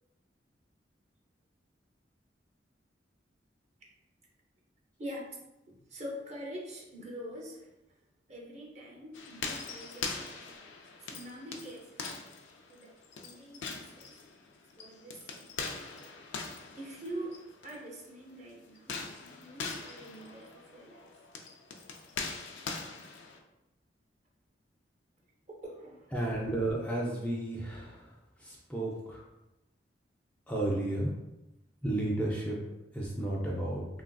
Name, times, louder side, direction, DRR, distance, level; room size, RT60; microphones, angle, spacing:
voice 1, 5.0-5.4 5.7-8.0 8.3-10.4 11.0-12.0 12.7-14.2 14.8-15.7 16.8-21.1 25.5-26.1, equal, 40° right, -2 dB, 0.6 m, -45 dB
sound 1, 9.1-17.8 18.8-23.4, left 4 dB, 80° left, 0.4 m, -42 dB
voice 2, 26.1-28.1 28.4-29.2 30.5-31.1 31.8-32.6 32.9-33.9, right 1 dB, 10° left, -4 dB, 0.4 m, -32 dB
3.2 x 2.4 x 2.2 m, 0.96 s
head